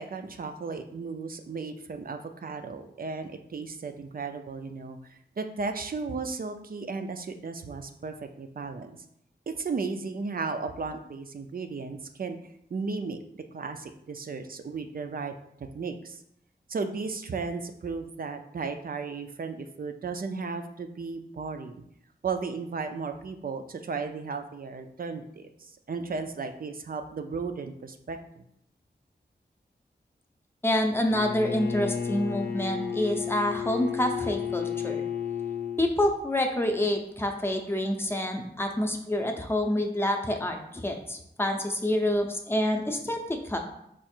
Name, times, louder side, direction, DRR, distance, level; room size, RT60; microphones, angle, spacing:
voice 1, 0.0-9.0 9.5-12.4 12.7-15.3 15.7-16.2 16.7-21.8 22.2-28.4, right 4 dB, 55° right, 6 dB, 0.4 m, -35 dB
voice 2, 30.6-35.0 35.8-43.6, left 1 dB, 15° left, 3 dB, 0.6 m, -27 dB
Bowed string instrument, 31.1-35.9, left 7 dB, 60° left, 0.6 m, -32 dB
4.7 x 2.4 x 4.3 m, 0.75 s
wide cardioid pair, 100°, 18 cm